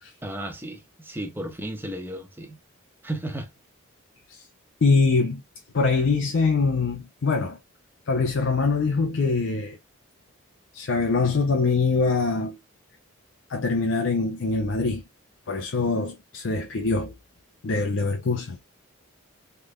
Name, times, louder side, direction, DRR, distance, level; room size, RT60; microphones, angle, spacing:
voice 1, 0.2-2.6 3.0-3.5, right 1 dB, 10° right, 0.9 m, -34 dB
voice 2, 4.8-5.4 5.7-7.6 8.1-9.8 10.7-12.6 13.5-15.0 15.5-17.1 17.6-18.6, left 4 dB, 60° left, 0.5 m, -23 dB
3.6 x 3.2 x 2.2 m
head